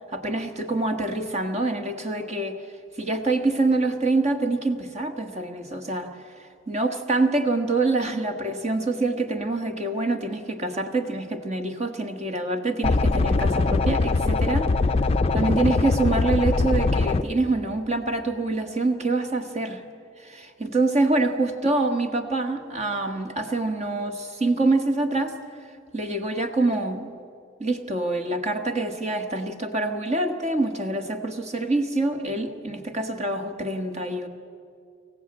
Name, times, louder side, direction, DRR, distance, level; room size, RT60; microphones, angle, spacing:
voice 1, 0.1-2.6 3.0-6.2 6.7-14.7 15.3-19.8 20.2-25.4 25.9-27.1 27.6-34.3, right 2 dB, 35° right, 5 dB, 1.4 m, -25 dB
sound 1, 12.8-17.2, left 3 dB, 30° left, 0.5 m, -22 dB
25.0 x 15.0 x 8.7 m, 2.5 s
head